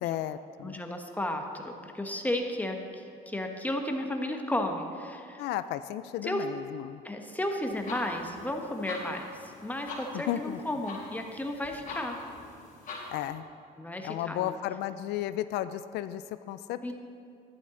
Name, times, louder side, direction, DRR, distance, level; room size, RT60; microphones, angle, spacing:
voice 1, 0.0-0.8 5.4-7.0 10.1-10.6 13.1-13.4 14.0-16.9, left 12 dB, 85° left, 12 dB, 0.4 m, -34 dB
voice 2, 0.6-5.4 6.2-6.4 7.0-12.2 13.8-14.6 16.8-16.9, left 1 dB, 10° left, 3 dB, 1.0 m, -33 dB
Clock Tick Tock, 7.7-13.3, left 3 dB, 50° left, 2.9 m, -44 dB
12.0 x 11.0 x 3.8 m, 2.5 s
cardioid pair, 110°, 17 cm